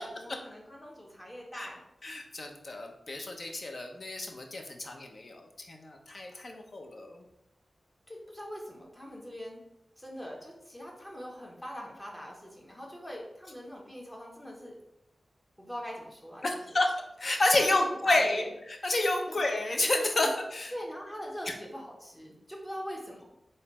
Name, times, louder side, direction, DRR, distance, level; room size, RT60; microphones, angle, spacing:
voice 1, 0.0-1.8 8.1-9.6 10.0-14.7 15.6-16.8 17.5-18.5 19.3-19.4 20.2-20.3 20.7-23.2, equal, 20° left, -2 dB, 1.4 m, -42 dB
voice 2, 2.0-7.2 16.4-20.7 21.5-21.6, left 2 dB, 60° left, 3 dB, 0.7 m, -30 dB
4.1 x 2.6 x 4.1 m, 0.85 s
cardioid pair, 45°, 0 cm